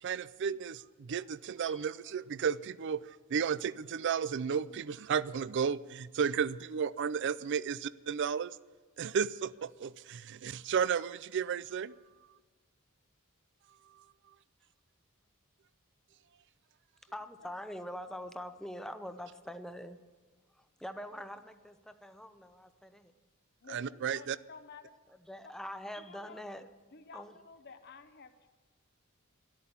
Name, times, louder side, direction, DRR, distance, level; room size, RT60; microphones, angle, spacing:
voice 1, 0.0-8.5 9.0-11.9 23.7-24.4, right 7 dB, 55° right, 19 dB, 0.4 m, -33 dB
voice 2, 17.1-20.0 20.6-23.1 25.3-26.7 27.1-27.4, equal, ahead, 9 dB, 0.7 m, -44 dB
voice 3, 23.6-24.8 26.1-26.4 26.9-28.5, left 5 dB, 50° left, 9 dB, 0.9 m, -52 dB
13.0 x 12.5 x 6.9 m, 1.4 s
head